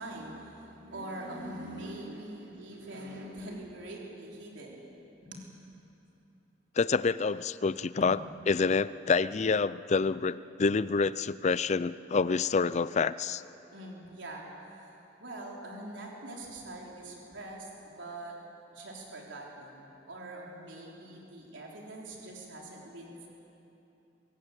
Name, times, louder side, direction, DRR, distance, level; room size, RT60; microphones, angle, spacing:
voice 1, 0.0-4.9 5.2-5.4 8.0-8.2 13.7-18.4 18.7-23.3, right 1 dB, 85° right, -2 dB, 3.7 m, -43 dB
voice 2, 6.8-8.2 8.5-13.4, left 4 dB, 40° left, 17 dB, 0.4 m, -27 dB
24.0 x 17.5 x 8.2 m, 3.0 s
head